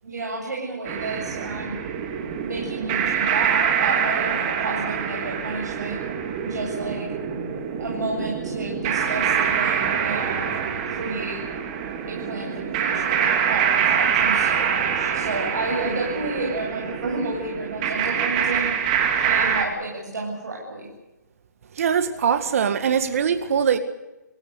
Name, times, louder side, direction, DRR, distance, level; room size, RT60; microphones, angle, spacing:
voice 1, 0.0-1.8 2.4-6.0 6.4-7.1 7.8-10.6 10.9-11.4 12.1-18.7 19.2-20.9, right 2 dB, 70° right, 7.9 m, -31 dB
sound 1, 0.9-19.6, right 8 dB, 30° right, 2.9 m, -25 dB
voice 2, 21.8-23.8, right 7 dB, 50° right, 1.9 m, -22 dB
28.5 x 16.5 x 8.1 m
hypercardioid pair, 150°, 10 cm